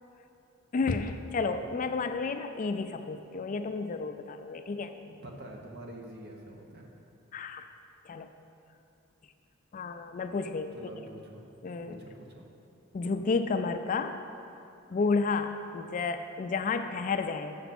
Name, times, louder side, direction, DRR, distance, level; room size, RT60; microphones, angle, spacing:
voice 1, 0.7-4.9 7.3-7.7 8.1-8.3 9.7-10.8 11.6-12.0 12.9-14.2 14.9-17.6, left 4 dB, 40° left, 8 dB, 0.3 m, -31 dB
voice 2, 5.1-6.9 10.7-11.4 11.9-12.4, right 1 dB, 55° right, 0 dB, 1.1 m, -46 dB
7.0 x 6.5 x 6.0 m, 2.6 s
head